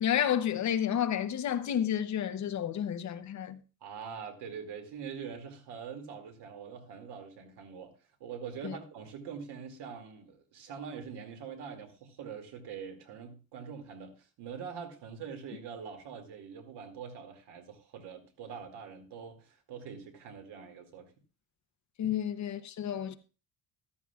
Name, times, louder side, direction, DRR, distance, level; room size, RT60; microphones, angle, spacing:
voice 1, 0.0-3.6 8.6-8.8 22.0-23.1, left 9 dB, 45° left, 0.7 m, -30 dB
voice 2, 3.8-7.9 8.2-21.1, right 6 dB, 80° right, 2.3 m, -44 dB
14.0 x 12.5 x 2.3 m
cardioid pair, 180°, 40 cm